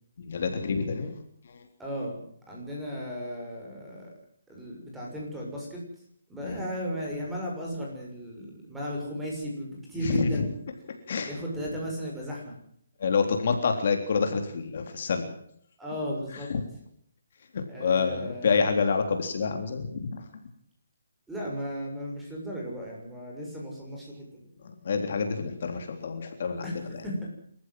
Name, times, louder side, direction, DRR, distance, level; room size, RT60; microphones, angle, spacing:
voice 1, 0.2-1.1 1.4-1.6 6.4-6.6 10.0-10.5 10.9-11.3 13.0-15.3 16.5-16.6 17.5-20.2 24.8-26.7, left 5 dB, 50° left, 5 dB, 3.5 m, -27 dB
voice 2, 1.8-2.2 2.5-4.1 4.5-5.8 6.3-10.5 11.2-12.5 15.8-16.5 17.7-18.7 21.3-24.4 26.6-27.3, equal, 5° right, -3 dB, 6.5 m, -35 dB
27.0 x 14.5 x 7.8 m, 0.66 s
hypercardioid pair, 170°, 0 cm